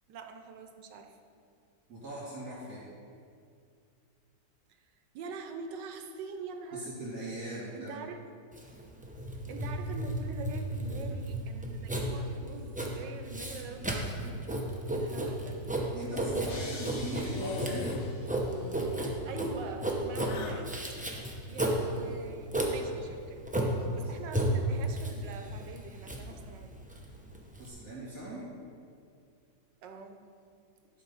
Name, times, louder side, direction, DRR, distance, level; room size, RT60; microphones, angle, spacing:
voice 1, 0.1-1.2 4.8-6.9 7.7-8.2 9.5-14.4 14.9-15.6 19.2-20.7 21.5-23.4 23.7-26.7 29.8-30.3, right 4 dB, 85° right, 5 dB, 1.4 m, -44 dB
voice 2, 1.9-2.8 6.7-8.1 15.9-17.8 22.7-22.9 23.9-24.1 27.6-28.4, right 1 dB, 50° right, -11 dB, 2.7 m, -40 dB
Writing, 8.5-27.7, right 1 dB, 10° right, 0.3 m, -33 dB
sound 1, 16.5-18.6, left 2 dB, 45° left, 1.3 m, -47 dB
sound 2, 17.3-18.1 18.4-19.0 20.2-20.7, left 6 dB, 70° left, 0.9 m, -41 dB
11.0 x 4.8 x 5.4 m, 2.4 s
omnidirectional pair, 1.9 m